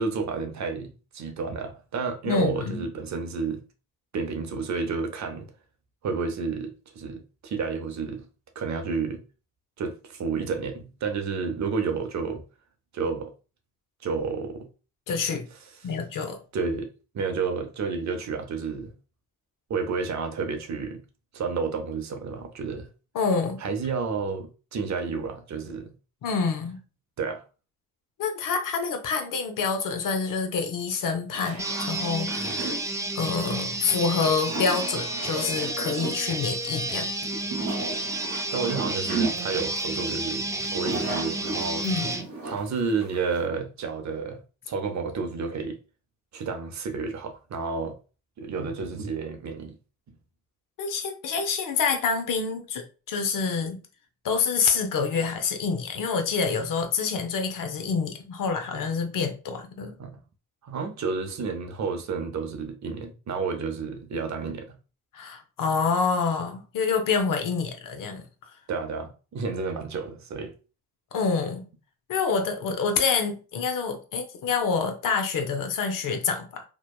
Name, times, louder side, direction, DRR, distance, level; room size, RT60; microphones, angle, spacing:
voice 1, 0.0-3.6 4.1-5.5 6.0-8.3 8.6-9.2 9.8-12.4 12.9-13.3 14.0-14.7 16.5-16.9 17.1-18.9 19.7-21.0 21.3-22.9 23.6-25.9 27.2-27.4 32.4-32.5 38.5-41.8 42.4-44.4 44.7-45.8 46.3-48.0 48.4-49.8 60.0-60.2 60.6-64.8 68.7-70.5, right 4 dB, 55° right, 0.6 m, -30 dB
voice 2, 2.2-2.9 15.1-15.5 15.8-16.4 23.1-23.6 26.2-26.8 28.2-32.7 33.1-37.1 41.8-42.1 50.8-52.8 53.1-53.8 54.2-59.9 65.1-68.3 71.1-71.6 72.1-76.6, left 5 dB, 65° left, 0.7 m, -27 dB
sound 1, 31.3-43.5, right 3 dB, 80° right, 0.9 m, -35 dB
sound 2, 31.6-42.3, right 2 dB, 10° right, 0.4 m, -31 dB
2.7 x 2.1 x 2.3 m
supercardioid pair, 45°, 35 cm